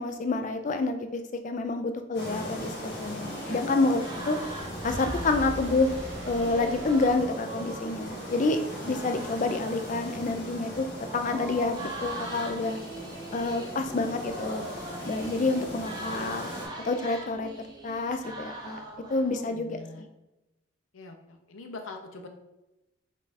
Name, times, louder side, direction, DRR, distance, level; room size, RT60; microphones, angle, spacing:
voice 1, 0.0-4.4 4.8-5.9 6.3-8.6 8.9-10.9 11.1-12.8 13.3-14.7 15.0-16.5 16.8-18.8 19.1-20.1, left 3 dB, 40° left, 6 dB, 0.4 m, -28 dB
sound 1, 2.1-16.7, equal, 55° left, 1.3 m, -39 dB
sound 2, 3.1-19.3, right 2 dB, 20° right, 0.7 m, -42 dB
voice 2, 3.4-3.9 15.6-15.8 16.1-16.7 17.0-17.1 19.2-20.0 20.9-22.3, left 3 dB, 80° left, 4 dB, 0.6 m, -44 dB
sound 3, 4.3-7.9, equal, 80° right, 1.3 m, -40 dB
5.3 x 2.4 x 4.0 m, 0.95 s
head